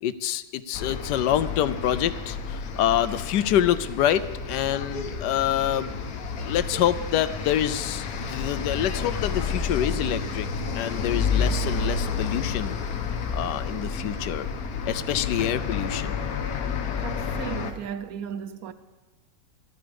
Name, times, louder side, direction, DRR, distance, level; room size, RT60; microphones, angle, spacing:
voice 1, 0.0-6.0 6.4-10.5 10.7-12.8 13.3-14.5 14.9-16.2, left 11 dB, 75° left, 1.2 m, -26 dB
sound 1, 0.7-17.7, left 5 dB, 60° left, 1.3 m, -30 dB
voice 2, 17.0-18.7, right 8 dB, 65° right, 1.0 m, -35 dB
14.5 x 12.0 x 5.2 m
omnidirectional pair, 1.9 m